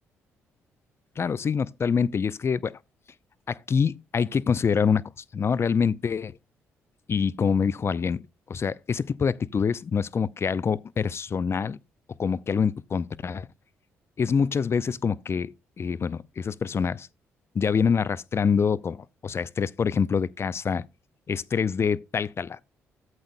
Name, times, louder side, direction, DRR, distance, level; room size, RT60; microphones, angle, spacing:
voice 1, 1.2-2.8 3.5-6.4 7.1-11.8 12.2-13.5 14.2-15.5 15.8-17.1 17.5-20.8 21.3-22.6, left 6 dB, 45° left, 0.5 m, -26 dB
14.0 x 7.9 x 2.2 m
hypercardioid pair, 50°, 6 cm